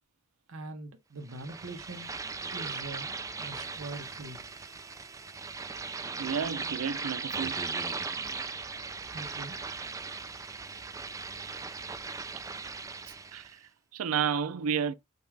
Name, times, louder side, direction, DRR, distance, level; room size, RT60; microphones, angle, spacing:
voice 1, 0.5-2.2 2.5-4.4 9.0-9.6, right 2 dB, 65° right, 0.9 m, -43 dB
sound 1, 1.3-13.5, right 4 dB, 15° right, 0.3 m, -38 dB
voice 2, 6.2-7.5 13.1-14.9, right 7 dB, 85° right, 0.4 m, -32 dB
5.2 x 2.4 x 3.2 m
head